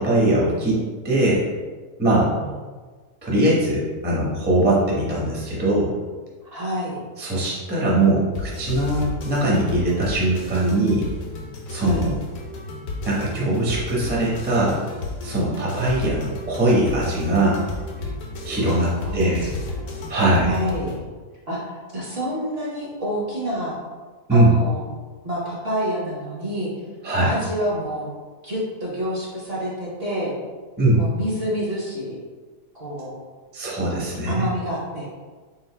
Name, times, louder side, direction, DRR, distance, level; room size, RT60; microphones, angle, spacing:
voice 1, 0.0-1.4 2.0-2.3 3.2-5.9 7.2-11.0 11.7-12.1 13.0-14.8 15.2-17.6 18.4-19.5 20.1-20.5 24.3-24.5 27.0-27.3 30.8-31.0 33.5-34.4, right 1 dB, 10° right, -6 dB, 0.6 m, -21 dB
voice 2, 6.4-7.0 11.8-12.1 18.6-19.5 20.3-20.9 21.5-21.6 21.9-23.7 24.3-24.9 25.2-26.7 27.2-28.1 28.4-30.3 31.0-32.2 32.7-33.1 33.8-35.1, equal, 45° right, -6 dB, 1.0 m, -28 dB
sound 1, 8.3-21.0, left 2 dB, 65° left, 1.0 m, -33 dB
3.9 x 2.6 x 4.4 m, 1.4 s
omnidirectional pair, 1.8 m